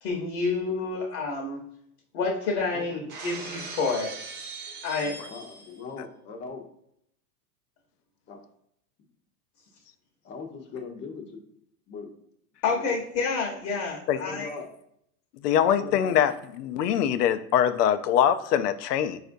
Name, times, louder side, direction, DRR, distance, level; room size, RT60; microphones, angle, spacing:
voice 1, 0.0-1.6 2.1-4.1 4.8-5.2 12.6-14.5, left 4 dB, 50° left, 0 dB, 0.9 m, -29 dB
voice 2, 2.7-3.1 5.0-6.7 8.3-8.4 10.2-11.5 11.9-12.1 12.9-13.0 14.2-14.7 15.8-16.3, left 4 dB, 25° left, 3 dB, 0.6 m, -40 dB
Shatter, 3.1-5.9, right 4 dB, 20° right, 0.3 m, -40 dB
voice 3, 15.4-19.2, left 9 dB, 80° left, 10 dB, 0.5 m, -23 dB
4.2 x 2.5 x 2.5 m, 0.70 s
hypercardioid pair, 115°, 47 cm